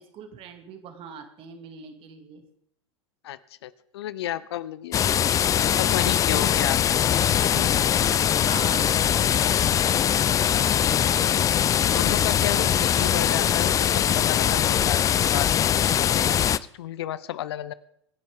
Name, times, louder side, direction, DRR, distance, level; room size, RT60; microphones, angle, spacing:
voice 1, 0.0-2.4 6.3-6.6 8.1-9.2, right 6 dB, 35° right, 6 dB, 2.5 m, -42 dB
voice 2, 3.2-5.0 5.7-7.1 7.3-7.7 11.9-16.4 16.7-17.7, left 12 dB, 60° left, 18 dB, 0.7 m, -33 dB
sound 1, 4.9-16.6, left 9 dB, 20° left, 0.4 m, -22 dB
25.5 x 10.5 x 3.7 m, 0.73 s
figure-of-eight pair, 90°, 15 cm